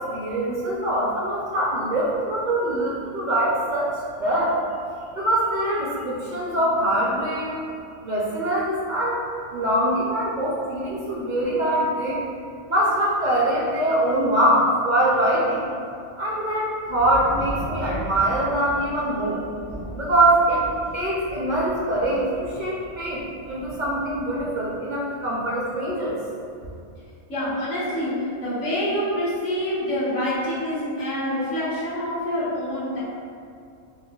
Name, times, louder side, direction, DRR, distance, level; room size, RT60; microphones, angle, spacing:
voice 1, 0.0-3.9 4.2-4.6 5.1-7.5 8.0-9.2 9.5-12.2 12.7-15.7 16.2-19.4 20.0-20.6 20.9-26.2, right 1 dB, 55° right, -6 dB, 0.6 m, -23 dB
sound 1, 16.8-24.4, equal, 80° right, 1.4 m, -38 dB
voice 2, 27.3-33.0, equal, 85° left, -10 dB, 1.6 m, -26 dB
6.2 x 2.1 x 2.3 m, 2.4 s
omnidirectional pair, 1.2 m